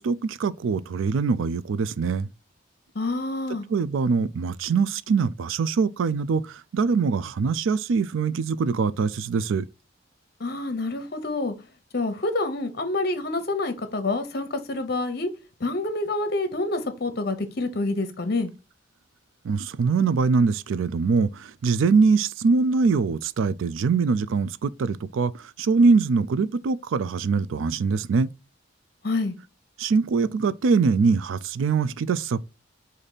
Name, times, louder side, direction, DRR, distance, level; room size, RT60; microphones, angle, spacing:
voice 1, 0.0-2.3 3.7-6.4 6.7-9.6 19.4-25.3 25.6-28.3 29.8-32.4, right 4 dB, 75° right, 0.4 m, -23 dB
voice 2, 2.9-3.6 10.4-11.5 11.9-15.3 15.6-18.5 29.0-29.3, left 2 dB, 50° left, 0.8 m, -27 dB
5.1 x 2.6 x 4.0 m
head